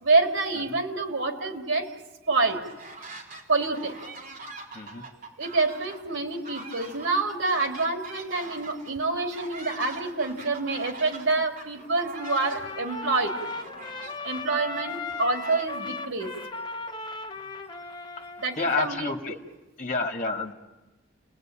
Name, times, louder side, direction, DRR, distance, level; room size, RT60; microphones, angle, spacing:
voice 1, 0.0-1.9 2.3-2.6 3.5-4.0 5.4-13.4 14.2-16.3 18.4-19.1, right 3 dB, 90° right, 4 dB, 3.4 m, -27 dB
sound 1, 2.5-3.4 3.7-16.0, right 3 dB, 45° right, 3.8 m, -44 dB
voice 2, 4.7-5.1 18.6-19.4 19.8-20.5, left 3 dB, 40° left, 3 dB, 2.4 m, -29 dB
Trumpet, 12.1-18.7, left 2 dB, 25° left, 1.3 m, -37 dB
30.0 x 20.0 x 9.1 m, 1.1 s
head